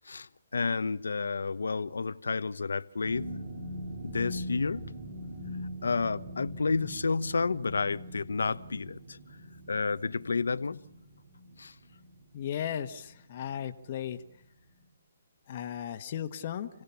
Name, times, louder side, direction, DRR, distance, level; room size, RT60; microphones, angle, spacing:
voice 1, 0.0-3.3 4.0-4.9 5.8-9.2 9.7-10.8 11.6-11.7, left 4 dB, 85° left, 0.9 m, -31 dB
sound 1, 3.0-13.7 14.0-14.4 14.7-14.9, equal, 65° right, 4.1 m, -43 dB
voice 2, 12.3-14.2 15.5-16.7, left 9 dB, 45° left, 1.4 m, -35 dB
29.0 x 17.5 x 7.1 m
hypercardioid pair, 150°, 0 cm